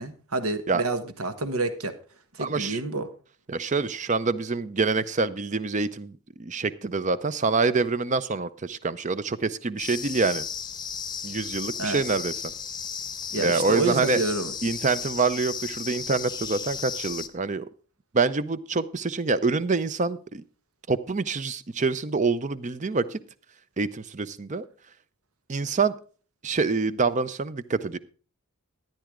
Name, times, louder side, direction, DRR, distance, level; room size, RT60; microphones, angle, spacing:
voice 1, 0.0-2.0 2.3-3.1 11.8-12.0 13.3-14.5, right 2 dB, 85° right, 10 dB, 1.4 m, -28 dB
voice 2, 2.4-2.8 3.5-10.5 11.2-12.3 13.4-14.2 14.6-17.7 18.1-20.4 20.9-23.2 23.8-24.6 25.5-25.9 26.4-28.0, right 4 dB, 35° right, 15 dB, 0.6 m, -26 dB
sound 1, 9.8-17.3, left 6 dB, 20° left, 0.8 m, -35 dB
13.5 x 10.5 x 3.7 m, 0.38 s
head